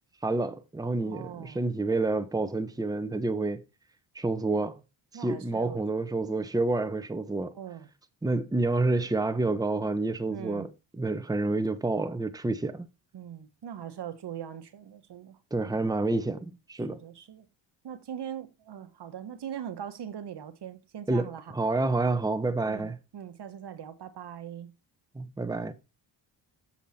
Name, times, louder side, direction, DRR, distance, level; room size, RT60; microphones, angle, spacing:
voice 1, 0.2-3.6 4.1-4.8 5.1-7.5 8.2-10.7 11.0-12.9 15.5-17.0 21.1-23.0 25.1-25.7, right 2 dB, 10° right, 1.0 m, -28 dB
voice 2, 1.0-1.6 4.5-4.7 5.1-5.8 7.6-7.9 10.3-10.7 13.1-15.4 15.6-15.8 16.9-17.4 17.8-21.5 22.7-22.9 23.1-24.7, right 9 dB, 55° right, 1.3 m, -41 dB
7.4 x 7.2 x 4.2 m
supercardioid pair, 60°, 47 cm